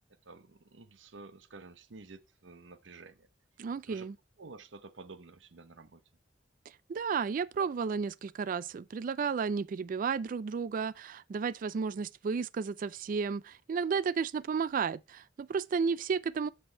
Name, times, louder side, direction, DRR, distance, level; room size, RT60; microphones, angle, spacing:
voice 1, 0.2-3.3 3.9-4.1 4.4-6.0, right 3 dB, 85° right, 0.8 m, -51 dB
voice 2, 3.6-4.1 6.9-16.5, right 5 dB, 45° right, 0.3 m, -33 dB
7.9 x 6.2 x 4.4 m
head